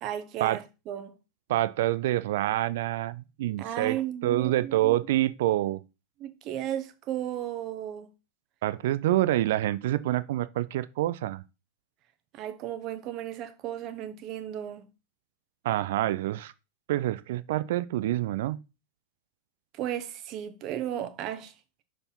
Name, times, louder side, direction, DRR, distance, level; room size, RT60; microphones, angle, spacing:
voice 1, 0.0-1.1 3.6-5.0 6.2-8.1 12.3-14.9 19.7-21.5, right 11 dB, 35° right, 1.1 m, -34 dB
voice 2, 1.5-5.8 8.6-11.4 15.6-16.5 16.9-18.6, right 14 dB, 55° right, 0.5 m, -27 dB
6.7 x 4.7 x 5.6 m
figure-of-eight pair, 90°, 0 cm